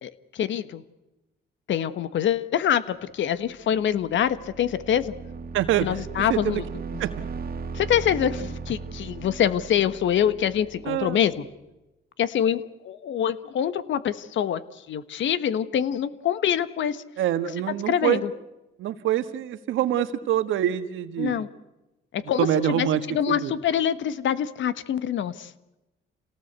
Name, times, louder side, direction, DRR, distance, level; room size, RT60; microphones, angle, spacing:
voice 1, 0.0-0.8 1.7-5.1 5.8-6.6 7.7-11.4 12.2-17.0 17.9-18.3 21.2-21.5 22.1-25.5, left 9 dB, 70° left, 15 dB, 1.4 m, -25 dB
sound 1, 3.6-11.4, right 4 dB, 50° right, 2.1 m, -37 dB
voice 2, 5.5-6.6 7.0-7.1 10.8-11.2 17.2-18.2 18.8-21.4 22.4-23.0 23.3-23.5, right 11 dB, 85° right, 11 dB, 1.6 m, -25 dB
27.5 x 18.5 x 8.2 m, 0.98 s
cardioid pair, 90°, 20 cm